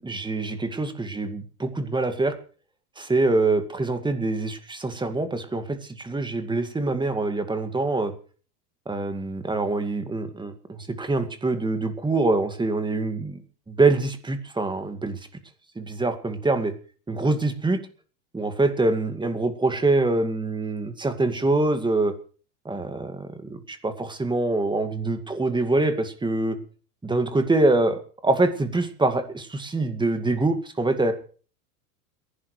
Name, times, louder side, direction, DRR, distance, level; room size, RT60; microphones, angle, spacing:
voice 1, 0.0-2.3 3.0-8.1 8.9-13.4 13.7-15.2 15.8-16.7 17.1-17.8 18.3-22.1 22.7-26.6 27.0-31.1, right 2 dB, 10° right, 8 dB, 2.1 m, -25 dB
29.5 x 11.5 x 3.3 m, 0.40 s
hypercardioid pair, 110°, 47 cm